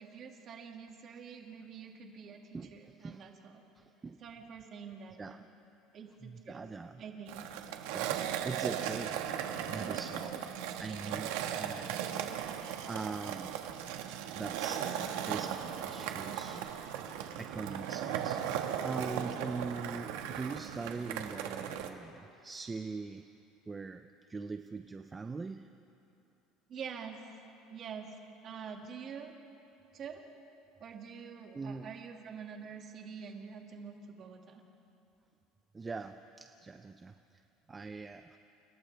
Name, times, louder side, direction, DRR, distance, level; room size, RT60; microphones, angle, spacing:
voice 1, 0.0-3.6 4.2-5.4 5.9-6.7 7.0-7.5 26.7-27.2 27.7-28.1 28.4-29.3 29.9-30.2 30.8-34.6, right 6 dB, 35° right, 2 dB, 2.1 m, -46 dB
voice 2, 2.5-3.2 3.8-4.2 5.2-5.4 6.2-7.0 7.9-8.2 8.4-9.3 9.7-13.6 14.4-16.7 17.4-23.3 23.7-25.7 31.5-31.9 35.7-37.4 37.7-38.4, right 4 dB, 15° right, 7 dB, 0.5 m, -42 dB
Skateboard, 7.3-21.9, right 9 dB, 85° right, 1.5 m, -37 dB
30.0 x 29.0 x 3.4 m, 2.8 s
cardioid pair, 170°, 0 cm